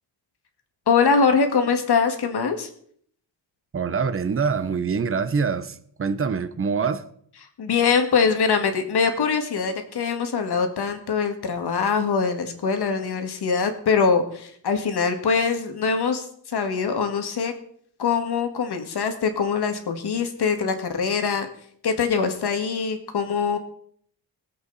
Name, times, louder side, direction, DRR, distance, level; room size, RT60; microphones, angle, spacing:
voice 1, 0.9-2.7 7.6-16.3 16.5-17.5 18.0-21.5 21.8-23.6, left 5 dB, 60° left, 6 dB, 1.9 m, -23 dB
voice 2, 3.7-7.0, right 5 dB, 30° right, 12 dB, 0.8 m, -25 dB
21.5 x 8.0 x 4.1 m, 0.63 s
wide cardioid pair, 165°, 45 cm